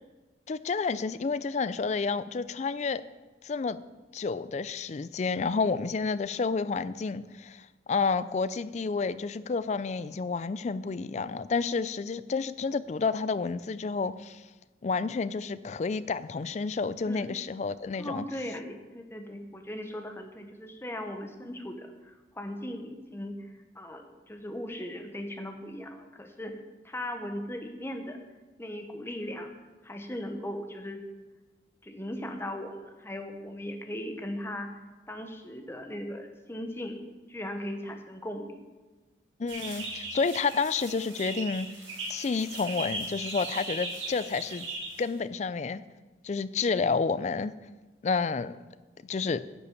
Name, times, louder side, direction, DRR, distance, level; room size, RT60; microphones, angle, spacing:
voice 1, 0.5-3.0 3.4-3.8 4.1-14.4 14.8-18.2 39.4-41.7 42.1-44.7 45.0-45.8 46.2-47.5 48.0-48.6 49.1-49.4, left 4 dB, 35° left, 16 dB, 0.3 m, -30 dB
voice 2, 17.0-17.4 18.0-23.5 23.7-26.6 26.8-28.2 28.6-29.5 29.8-31.0 31.8-34.7 35.1-37.0 37.3-38.6, left 1 dB, 10° left, 5 dB, 1.0 m, -38 dB
sound 1, 39.5-45.2, right 2 dB, 75° right, 3.5 m, -38 dB
10.0 x 6.9 x 7.1 m, 1.2 s
head